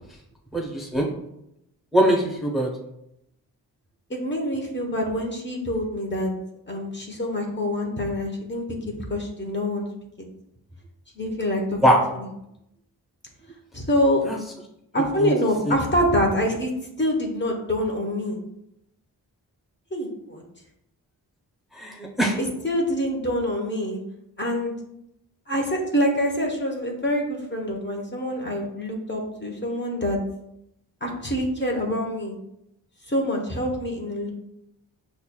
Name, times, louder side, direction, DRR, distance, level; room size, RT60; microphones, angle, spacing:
voice 1, 0.5-1.1 1.9-2.7 11.8-12.1 14.3-14.4 15.2-15.3 15.7-15.8 21.7-22.4, equal, ahead, -1 dB, 0.8 m, -21 dB
voice 2, 4.1-6.3 6.7-9.8 11.2-11.6 12.1-12.3 13.7-14.2 14.9-16.7 17.0-18.4 19.9-20.4 22.6-24.0 24.4-24.7 25.5-30.2 31.0-32.3 33.1-34.3, equal, 25° left, 0 dB, 0.9 m, -25 dB
5.4 x 2.4 x 2.2 m, 0.82 s
cardioid pair, 45°, 40 cm